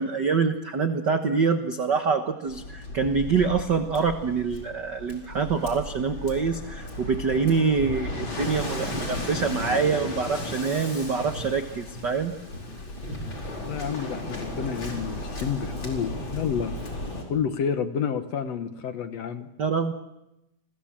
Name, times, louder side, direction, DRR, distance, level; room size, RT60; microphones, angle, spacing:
voice 1, 0.0-12.3 19.6-19.9, right 5 dB, 80° right, 7 dB, 0.9 m, -25 dB
Waves surf, 2.4-17.2, left 1 dB, 35° left, 5.1 m, -35 dB
voice 2, 13.6-16.8 17.3-19.5, left 7 dB, 60° left, 9 dB, 1.9 m, -29 dB
29.5 x 22.0 x 7.4 m, 0.89 s
omnidirectional pair, 3.9 m